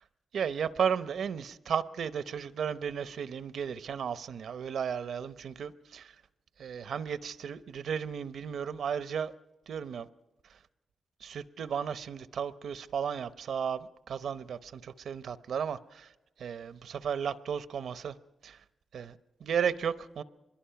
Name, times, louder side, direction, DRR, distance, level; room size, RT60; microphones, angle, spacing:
voice 1, 0.3-6.1 6.6-9.3 9.7-10.1 10.5-10.6 11.2-16.1 16.4-18.2 18.4-18.6 18.9-20.2, right 7 dB, 75° right, 0.7 m, -34 dB
24.5 x 22.0 x 5.8 m
wide cardioid pair, 115°, 0 cm